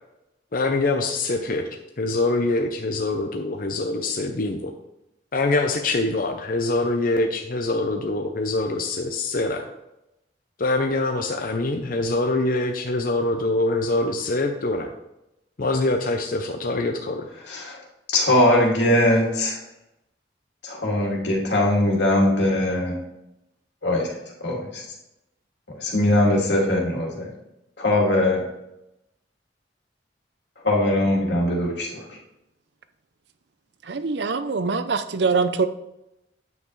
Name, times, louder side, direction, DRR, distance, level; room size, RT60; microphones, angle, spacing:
voice 1, 0.5-1.7 2.0-4.7 5.3-9.6 10.6-14.9 15.6-17.3, left 2 dB, 55° left, 0.6 m, -24 dB
voice 2, 17.5-17.8 18.1-19.6 20.6-23.0 23.8-24.1 24.4-24.8 25.7-27.3 27.8-28.4 30.6-32.0, left 1 dB, 85° left, 2.5 m, -21 dB
voice 3, 33.9-35.7, right 4 dB, 70° right, 0.6 m, -23 dB
9.5 x 7.6 x 3.2 m
head